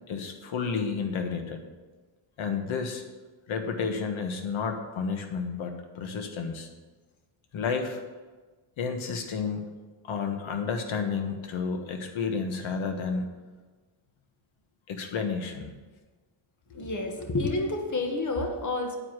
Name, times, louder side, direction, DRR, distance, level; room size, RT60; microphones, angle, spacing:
voice 1, 0.1-1.6 2.4-3.0 3.5-6.7 7.5-8.0 8.8-9.7 10.0-13.2 14.9-15.7 16.8-16.9, left 5 dB, 70° left, 5 dB, 1.4 m, -31 dB
voice 2, 16.7-19.0, left 2 dB, 35° left, 4 dB, 1.6 m, -29 dB
8.7 x 4.8 x 7.4 m, 1.3 s
cardioid pair, 75°, 49 cm